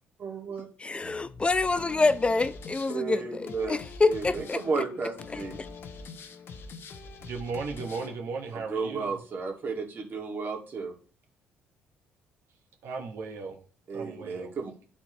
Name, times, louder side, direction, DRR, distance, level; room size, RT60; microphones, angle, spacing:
voice 1, 0.2-0.7 2.9-3.8 4.1-5.6 8.7-10.9 13.9-14.7, right 4 dB, 50° right, 2.0 m, -33 dB
voice 2, 0.8-4.6 5.3-5.7, left 3 dB, 25° left, 0.4 m, -27 dB
sound 1, 1.0-8.2, left 4 dB, 55° left, 0.8 m, -44 dB
voice 3, 7.2-9.2 12.8-13.6 13.9-14.6, right 4 dB, 70° right, 1.3 m, -36 dB
10.0 x 4.3 x 3.0 m
supercardioid pair, 70°, 5 cm